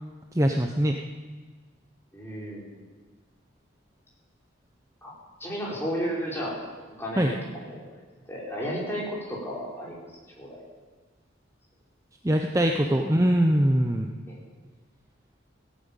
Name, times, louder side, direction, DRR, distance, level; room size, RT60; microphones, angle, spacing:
voice 1, 0.3-1.0 7.2-7.3 12.2-14.1, right 1 dB, 15° right, 3 dB, 0.8 m, -22 dB
voice 2, 2.1-2.8 5.0-5.1 5.4-6.6 7.0-8.0 8.3-10.1 10.3-10.6 14.3-14.4, equal, 10° left, -5 dB, 4.9 m, -33 dB
17.0 x 9.4 x 8.8 m, 1.4 s
head